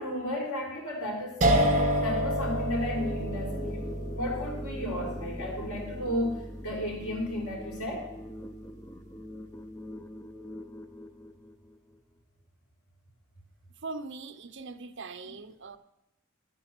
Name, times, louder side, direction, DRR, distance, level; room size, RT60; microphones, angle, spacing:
voice 1, 0.0-1.7 2.0-3.9 4.1-8.0, left 1 dB, 90° left, -3 dB, 4.6 m, -33 dB
sound 1, 1.4-8.3, equal, 35° right, 1.6 m, -30 dB
sound 2, 3.0-12.0, left 1 dB, 15° left, 0.5 m, -43 dB
voice 2, 13.8-15.8, right 3 dB, 55° right, 10 dB, 0.7 m, -41 dB
12.5 x 9.4 x 6.0 m, 0.93 s
head